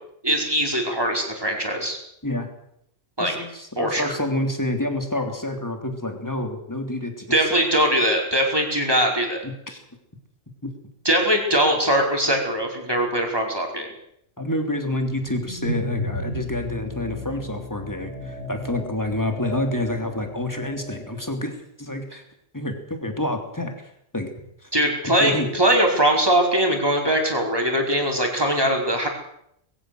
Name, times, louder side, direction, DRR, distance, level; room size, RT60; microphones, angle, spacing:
voice 1, 0.2-2.0 3.2-3.3 3.8-4.1 7.3-9.4 11.0-13.9 24.7-29.1, right 1 dB, 20° right, 1 dB, 5.0 m, -21 dB
voice 2, 3.2-7.5 9.4-9.8 10.6-10.7 14.4-21.5 21.8-22.2 22.5-24.3 24.6-24.7 25.2-25.5, left 1 dB, 15° left, 5 dB, 3.2 m, -28 dB
sound 1, 15.0-21.3, equal, 65° left, 7.4 m, -34 dB
21.5 x 16.0 x 7.9 m, 0.75 s
omnidirectional pair, 1.3 m